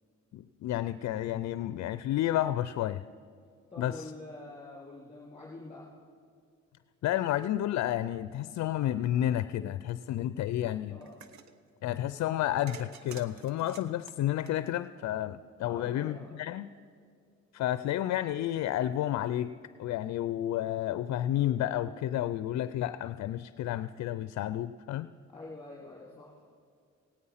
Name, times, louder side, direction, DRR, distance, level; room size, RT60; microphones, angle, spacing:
voice 1, 0.3-3.0 3.8-4.1 7.0-11.0 11.8-16.7 17.5-19.5 19.8-25.1, left 12 dB, 65° left, 13 dB, 0.4 m, -31 dB
voice 2, 3.7-5.9 10.9-11.1 15.6-16.3 25.3-26.4, left 2 dB, 20° left, -5 dB, 2.9 m, -46 dB
sound 1, 11.0-11.5 12.7-15.2, right 6 dB, 65° right, 1.0 m, -49 dB
17.0 x 9.6 x 5.6 m, 2.3 s
cardioid pair, 90°, 30 cm